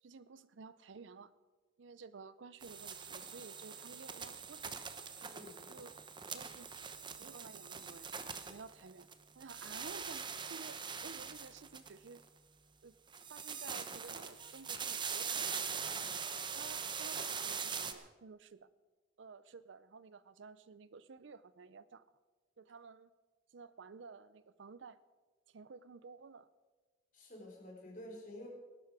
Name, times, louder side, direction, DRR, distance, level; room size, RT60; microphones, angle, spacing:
voice 1, 0.0-1.3 1.8-4.9 5.7-6.7 7.2-8.1 8.4-9.1 9.3-12.2 12.8-12.9 13.3-16.0 16.5-18.7 19.2-22.0 22.6-23.1 23.5-25.0 25.5-26.5, right 4 dB, 75° right, 16 dB, 0.6 m, -53 dB
sound 1, 2.6-9.1 9.4-12.2 13.1-17.9, right 6 dB, 25° right, 0.9 m, -42 dB
voice 2, 5.3-5.7 27.1-28.5, left 1 dB, 45° left, -1 dB, 4.1 m, -50 dB
19.0 x 12.0 x 4.9 m, 1.3 s
head